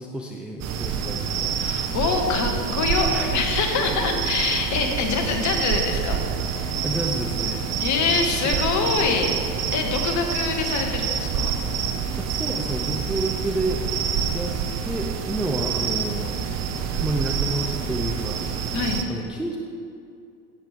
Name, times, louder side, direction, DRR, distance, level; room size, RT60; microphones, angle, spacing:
voice 1, 0.0-1.9 3.1-3.4 6.8-7.7 8.5-8.6 12.2-13.8 14.3-14.5 14.8-16.4 16.9-18.6 19.1-19.6, right 1 dB, ahead, 0 dB, 0.4 m, -30 dB
sound 1, 0.6-19.0, right 7 dB, 35° right, 1.0 m, -27 dB
voice 2, 1.6-6.2 6.5-6.7 7.8-9.3 9.7-11.5 18.7-19.1, left 4 dB, 35° left, 3 dB, 1.7 m, -25 dB
16.0 x 7.4 x 3.5 m, 2.5 s
figure-of-eight pair, 85°, 47 cm